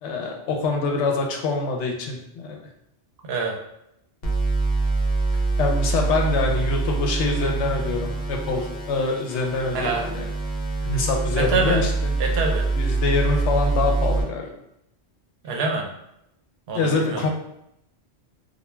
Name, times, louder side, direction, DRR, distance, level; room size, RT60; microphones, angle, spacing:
voice 1, 0.0-2.6 5.6-10.3 10.8-12.1 12.7-14.5 16.7-17.3, left 3 dB, 85° left, 2 dB, 0.9 m, -25 dB
voice 2, 3.2-3.5 9.7-10.0 11.4-11.8 12.2-12.7 15.4-15.9 16.7-17.3, right 3 dB, 70° right, 0 dB, 0.8 m, -25 dB
sound 1, 4.2-14.2, right 3 dB, 50° left, 0.6 m, -25 dB
2.3 x 2.2 x 3.0 m, 0.81 s
omnidirectional pair, 1.1 m